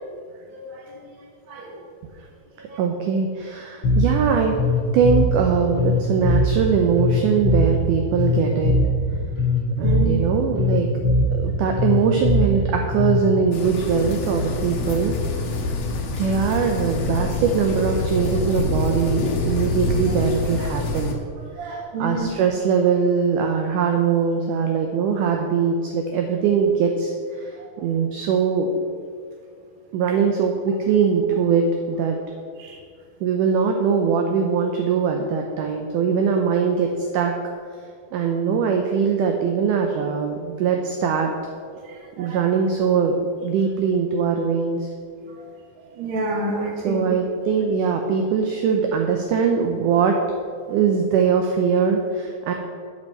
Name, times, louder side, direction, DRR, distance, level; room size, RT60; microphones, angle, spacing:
voice 1, 0.5-1.0 1.5-1.8 2.7-2.8 3.8-3.9 9.8-10.2 21.6-22.3 32.6-32.8 41.8-42.4 45.4-45.5 45.9-47.1, right 2 dB, 50° right, -1 dB, 1.7 m, -29 dB
voice 2, 2.8-4.6 4.9-8.8 9.8-10.9 11.3-15.2 16.2-21.2 21.6-27.5 27.8-28.7 29.9-32.2 33.2-37.4 38.1-41.3 42.2-43.2 43.4-44.9 46.8-50.2 50.7-52.5, right 6 dB, 80° right, 3 dB, 1.8 m, -21 dB
Bass guitar, 3.8-13.4, left 1 dB, 50° left, 3.6 m, -21 dB
sound 1, 13.5-21.1, left 2 dB, 75° left, 2.9 m, -26 dB
8.8 x 5.3 x 7.6 m, 2.1 s
omnidirectional pair, 4.5 m